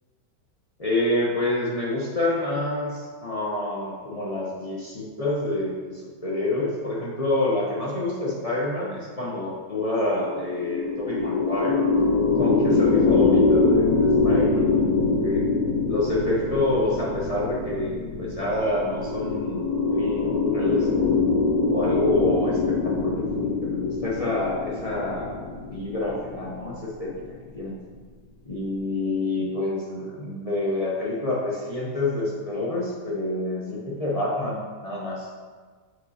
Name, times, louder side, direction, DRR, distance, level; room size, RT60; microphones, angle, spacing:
voice 1, 0.8-11.8 12.4-15.4 15.9-19.6 19.9-21.2 21.7-27.1 27.5-27.8 28.4-35.3, left 2 dB, 40° left, -6 dB, 0.5 m, -27 dB
sound 1, 10.2-27.6, left 3 dB, 65° left, 1.2 m, -24 dB
7.7 x 4.5 x 2.7 m, 1.5 s
omnidirectional pair, 1.9 m